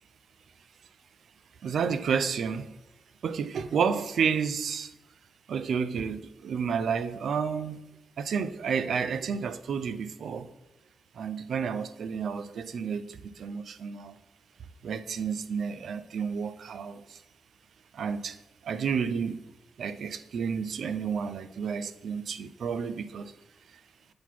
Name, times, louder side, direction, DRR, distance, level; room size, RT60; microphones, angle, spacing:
voice 1, 1.6-2.7 3.2-4.9 5.5-7.8 8.2-10.5 11.2-14.1 14.8-17.0 18.0-18.4 18.7-19.4 19.8-23.3, right 6 dB, 70° right, 0.5 m, -30 dB
8.5 x 4.1 x 4.5 m
cardioid pair, 75°, 0 cm